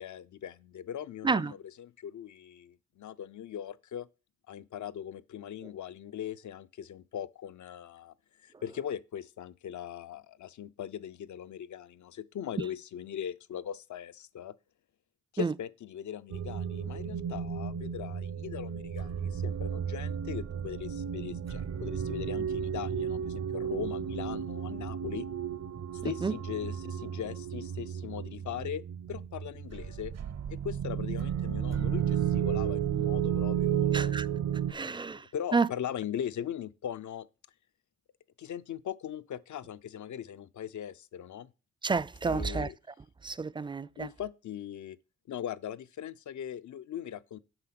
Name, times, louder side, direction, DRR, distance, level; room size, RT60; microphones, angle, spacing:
voice 1, 0.0-4.1 4.5-8.1 8.4-14.5 15.3-25.3 25.9-28.8 29.1-30.1 30.5-34.1 34.7-37.3 38.4-41.5 42.2-42.8 44.0-45.0 45.3-47.4, left 9 dB, 75° left, 0.6 m, -40 dB
sound 1, 16.3-34.7, right 9 dB, 60° right, 0.6 m, -33 dB
voice 2, 26.0-26.3 33.9-34.3 34.7-35.3 35.5-35.7 41.8-42.7 43.2-44.1, right 4 dB, 15° right, 0.4 m, -30 dB
8.0 x 5.6 x 5.8 m
cardioid pair, 70°, 30 cm